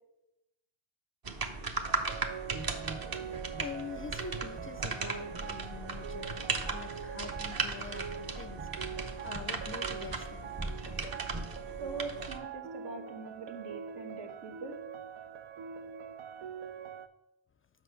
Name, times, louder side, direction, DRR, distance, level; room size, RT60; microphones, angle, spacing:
sound 1, 1.2-12.4, right 4 dB, 50° right, 1.0 m, -37 dB
sound 2, 1.9-17.1, right 8 dB, 90° right, 0.5 m, -44 dB
sound 3, 2.5-11.5, right 2 dB, 20° right, 0.6 m, -47 dB
voice 1, 3.1-11.2, left 7 dB, 30° left, 12 dB, 0.3 m, -46 dB
voice 2, 11.8-14.7, right 4 dB, 75° right, 2 dB, 1.5 m, -42 dB
6.1 x 5.1 x 5.6 m, 0.91 s
supercardioid pair, 50°, 46 cm